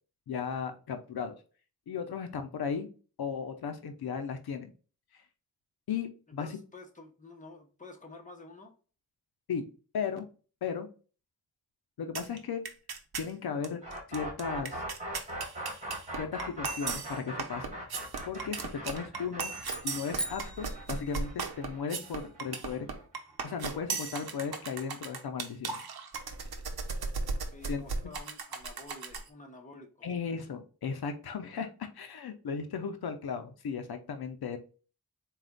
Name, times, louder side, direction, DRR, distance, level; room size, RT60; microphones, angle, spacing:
voice 1, 0.3-1.4 1.9-2.9 3.2-4.7 5.9-6.5 9.5-9.7 9.9-10.3 10.6-10.9 12.0-12.6 13.2-13.8 14.1-14.8 16.2-17.7 18.3-19.5 19.8-22.9 23.4-25.8 27.7-27.8 30.0-34.6, left 6 dB, 80° left, 0.6 m, -36 dB
voice 2, 6.4-8.7 27.5-30.4, left 3 dB, 20° left, 1.0 m, -50 dB
sound 1, 12.1-12.4 12.6-13.3 13.6-13.7 13.9-29.3, right 4 dB, 80° right, 0.8 m, -37 dB
sound 2, 13.8-23.7, right 1 dB, 20° right, 1.8 m, -41 dB
sound 3, 19.6-21.9, right 1 dB, ahead, 0.4 m, -41 dB
4.1 x 2.4 x 3.8 m
wide cardioid pair, 70°, 37 cm